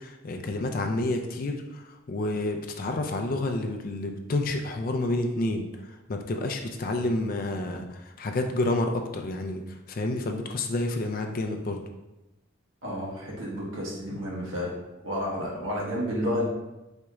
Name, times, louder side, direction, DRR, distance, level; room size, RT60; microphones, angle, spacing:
voice 1, 0.0-1.8 2.1-9.6 9.9-11.8, left 2 dB, 45° left, 4 dB, 0.4 m, -29 dB
voice 2, 12.8-14.7 15.0-16.4, equal, 75° right, -4 dB, 1.2 m, -31 dB
4.2 x 2.4 x 3.0 m, 0.99 s
head